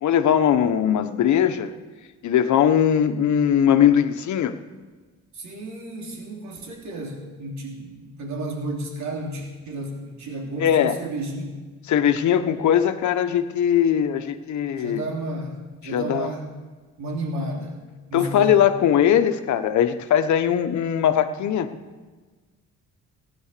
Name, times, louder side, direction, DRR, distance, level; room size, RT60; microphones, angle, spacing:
voice 1, 0.0-1.7 2.2-4.5 10.6-11.0 11.9-15.0 15.8-16.3 18.1-21.7, left 9 dB, 70° left, 9 dB, 1.1 m, -20 dB
voice 2, 5.3-11.5 14.7-16.5 17.0-17.8 18.1-18.6, right 1 dB, 65° right, 0 dB, 3.2 m, -32 dB
16.0 x 11.0 x 6.8 m, 1.3 s
cardioid pair, 90°, 30 cm